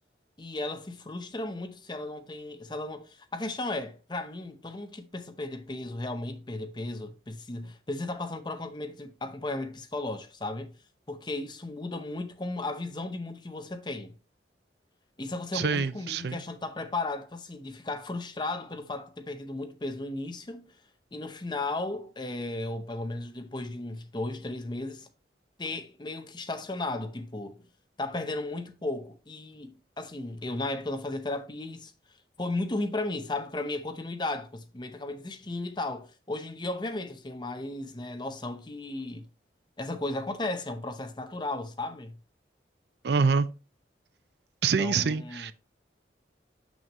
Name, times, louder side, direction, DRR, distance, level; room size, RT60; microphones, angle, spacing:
voice 1, 0.4-10.7 11.1-14.1 15.2-20.8 21.1-25.1 25.6-27.6 28.0-31.9 32.4-39.3 39.8-42.2 44.8-45.5, left 2 dB, 25° left, 0.7 m, -35 dB
voice 2, 15.5-16.4 43.0-43.5 44.6-45.5, right 5 dB, 65° right, 0.4 m, -26 dB
7.0 x 6.2 x 3.0 m
head